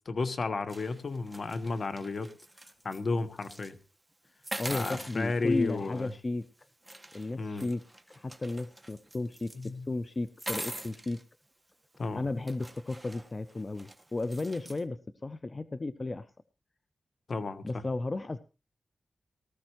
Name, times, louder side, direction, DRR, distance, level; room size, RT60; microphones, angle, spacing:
voice 1, 0.0-2.3 2.8-3.8 4.7-6.1 7.4-7.6 9.5-9.8 12.0-12.3 17.3-17.8, left 3 dB, 55° left, 1.3 m, -32 dB
sound 1, 0.7-3.0 3.4-3.7 4.4-6.2 6.8-9.7 10.3-11.2 11.9-12.0 12.5-14.8, right 1 dB, 10° right, 1.3 m, -44 dB
voice 2, 4.6-6.5 7.1-11.2 12.1-16.3 17.6-18.4, left 2 dB, 35° left, 0.6 m, -34 dB
18.5 x 14.0 x 3.1 m
wide cardioid pair, 85°, 0 cm